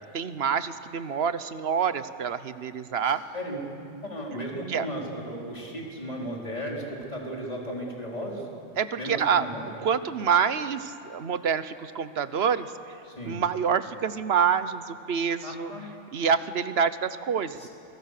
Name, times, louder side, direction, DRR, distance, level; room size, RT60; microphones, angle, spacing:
voice 1, 0.1-3.2 4.7-4.9 8.8-9.5 9.8-13.0 13.2-15.7 16.1-17.7, right 7 dB, 60° right, 13 dB, 1.1 m, -27 dB
voice 2, 3.0-3.6 4.0-8.4 9.0-9.7 13.1-13.4 15.4-15.9 17.6-17.7, equal, 35° left, -2 dB, 4.3 m, -35 dB
29.5 x 23.0 x 6.6 m, 2.6 s
omnidirectional pair, 1.2 m